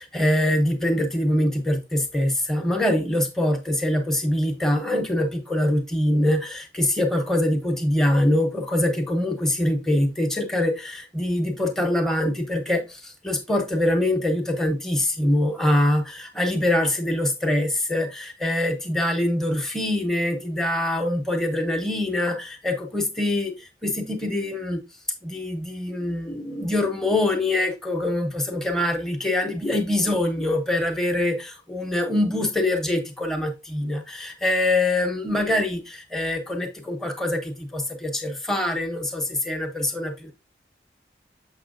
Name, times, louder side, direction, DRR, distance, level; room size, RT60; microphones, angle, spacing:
voice 1, 0.0-24.8 25.2-40.3, left 1 dB, 5° left, 0.7 m, -24 dB
6.8 x 5.5 x 2.5 m
head